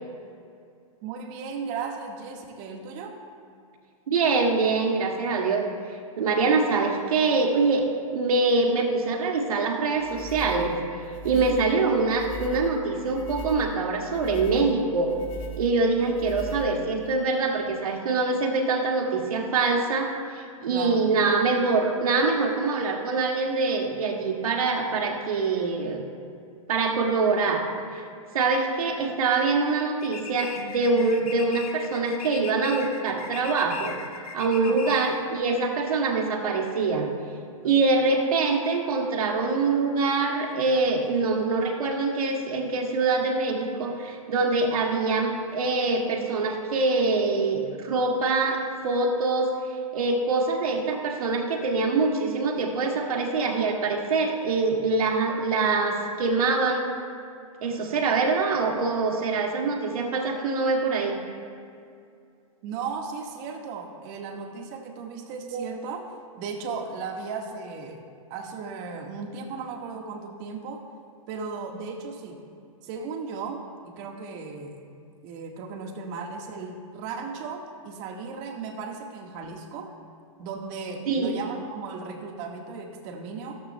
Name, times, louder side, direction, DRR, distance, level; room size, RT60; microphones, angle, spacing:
voice 1, 1.0-3.2 11.3-11.6 20.7-21.1 34.6-35.0 62.6-68.0 68.3-70.8 71.3-72.4 72.8-74.8 75.2-79.9 80.4-83.6, right 5 dB, 40° right, 3 dB, 1.5 m, -36 dB
voice 2, 4.1-5.7 6.2-7.9 8.1-10.8 11.2-15.2 15.6-26.0 26.7-27.6 28.3-34.0 34.3-37.1 37.6-49.5 49.9-56.9 57.6-61.2 81.1-81.3, right 3 dB, 80° right, 1 dB, 1.9 m, -24 dB
sound 1, 10.0-17.1, right 2 dB, 35° left, 1.2 m, -39 dB
sound 2, 30.0-35.3, left 7 dB, 90° left, 1.3 m, -39 dB
15.0 x 14.0 x 2.2 m, 2.4 s
hypercardioid pair, 140°, 18 cm